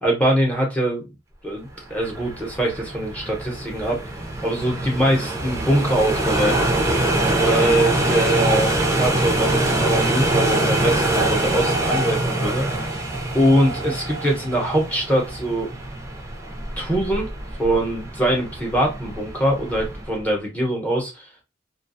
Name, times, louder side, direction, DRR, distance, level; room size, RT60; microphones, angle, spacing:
voice 1, 0.0-1.1 1.4-4.0 4.4-6.7 7.4-13.1 13.3-15.7 16.8-17.3 17.6-21.4, right 1 dB, 10° left, 0.8 m, -23 dB
sound 1, 1.9-20.2, right 2 dB, 15° right, 0.4 m, -24 dB
2.3 x 2.2 x 2.5 m
head